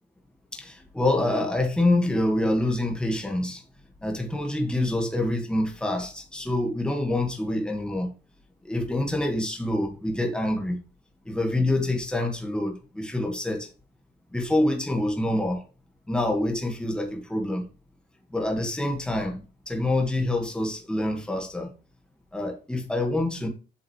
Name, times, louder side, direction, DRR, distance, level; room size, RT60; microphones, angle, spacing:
voice 1, 0.5-3.6 4.0-8.1 8.6-10.8 11.3-13.7 14.3-15.6 16.1-17.7 18.3-21.7 22.3-23.5, left 1 dB, 5° left, 1.8 m, -26 dB
8.0 x 5.6 x 3.3 m
cardioid pair, 110°, 17 cm